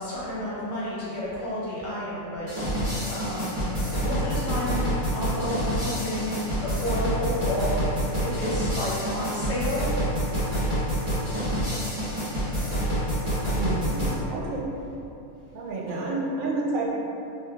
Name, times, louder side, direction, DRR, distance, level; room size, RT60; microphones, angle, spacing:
voice 1, 0.0-2.5 3.1-4.8 5.1-7.8 8.2-9.9, left 1 dB, 60° left, -8 dB, 1.0 m, -31 dB
sound 1, 2.5-14.2, equal, 50° right, 1.2 m, -27 dB
voice 2, 13.6-14.7 15.5-16.9, right 2 dB, 75° right, -4 dB, 1.0 m, -29 dB
3.0 x 2.5 x 2.3 m, 2.8 s
omnidirectional pair, 1.4 m